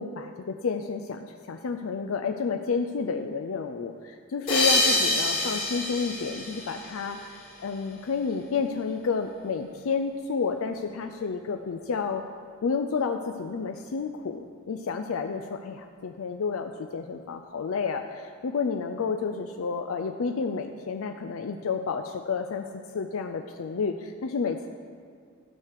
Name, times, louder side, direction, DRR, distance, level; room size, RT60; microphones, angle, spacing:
voice 1, 0.0-12.2 12.6-22.7 22.9-24.7, left 5 dB, 85° left, 5 dB, 0.4 m, -30 dB
sound 1, 4.5-7.5, left 2 dB, 40° left, 3.1 m, -26 dB
13.0 x 4.6 x 6.6 m, 2.1 s
head